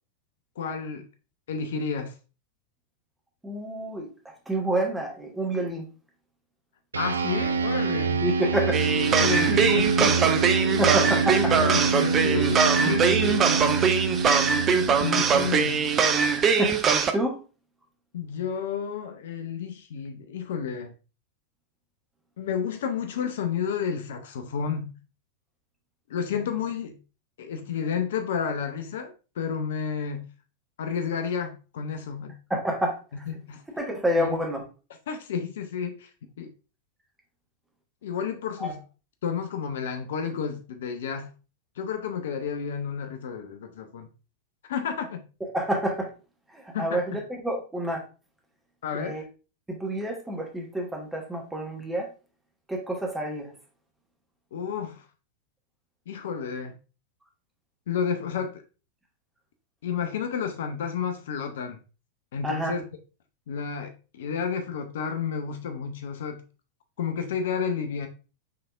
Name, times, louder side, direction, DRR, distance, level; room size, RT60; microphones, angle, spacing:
voice 1, 0.6-1.1 1.5-2.1 7.0-8.2 9.2-10.4 11.4-13.4 15.0-15.8 18.1-20.9 22.4-25.0 26.1-27.0 27.4-30.3 30.8-32.3 33.3-33.6 34.2-34.4 35.1-36.1 36.4-36.5 38.0-38.8 39.2-41.3 41.8-44.1 44.7-45.2 46.7-47.0 48.8-49.3 54.5-55.1 56.1-56.7 57.9-58.6 59.8-61.8 62.3-62.8 63.5-66.4 67.0-68.1, left 7 dB, 60° left, 0.5 m, -31 dB
voice 2, 3.4-5.9 8.2-8.8 9.1-9.6 10.0-10.3 10.8-11.5 16.5-16.8 17.1-17.4 32.5-33.0 33.8-34.6 38.6-38.7 45.5-46.1 46.5-48.0 48.9-49.2 49.7-52.1 52.7-53.5 62.4-62.7, right 1 dB, 10° right, 1.2 m, -28 dB
sound 1, 6.9-16.7, right 4 dB, 75° right, 0.4 m, -26 dB
sound 2, 8.7-17.1, right 6 dB, 25° right, 0.5 m, -22 dB
5.7 x 3.3 x 2.4 m
figure-of-eight pair, 90°, 0 cm